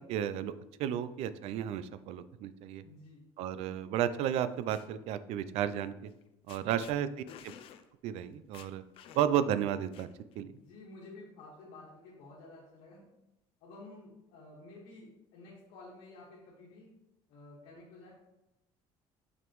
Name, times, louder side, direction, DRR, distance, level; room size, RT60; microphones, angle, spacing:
voice 1, 0.1-0.5 0.8-2.8 3.4-6.1 6.5-7.1 8.0-8.8 9.1-10.1 10.4-10.5, right 10 dB, 65° right, 13 dB, 0.4 m, -32 dB
voice 2, 2.8-3.2 6.6-6.8 7.1-7.2 10.7-13.1 13.6-16.9 17.3-18.1, left 2 dB, 80° left, -6 dB, 1.7 m, -52 dB
sound 1, 4.3-4.9 6.1-6.2 6.5-6.9 7.3-7.8 8.2-8.3 8.5-9.4 9.9-10.4, left 9 dB, 50° left, 0.4 m, -52 dB
5.9 x 5.2 x 3.0 m, 0.93 s
cardioid pair, 150°, 12 cm